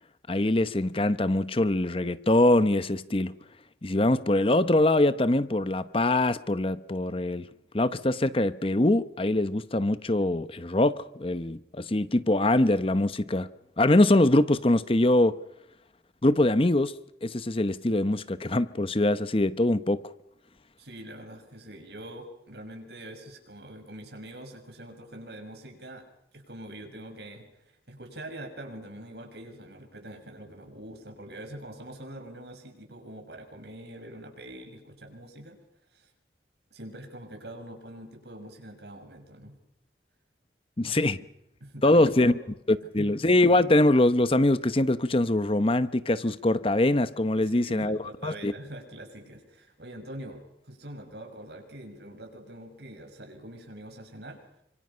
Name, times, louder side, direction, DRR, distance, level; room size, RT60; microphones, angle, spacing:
voice 1, 0.3-3.3 3.8-7.5 7.7-13.5 13.8-15.4 16.2-16.9 17.2-20.1 40.8-41.2 41.8-42.3 42.7-48.5, left 1 dB, 30° left, 0.9 m, -23 dB
voice 2, 20.8-26.0 26.3-27.5 27.9-35.6 35.9-36.1 36.7-39.6 40.8-41.1 41.6-42.4 43.0-43.2 47.4-54.6, right 1 dB, 70° right, 6.4 m, -44 dB
28.5 x 26.0 x 5.7 m
head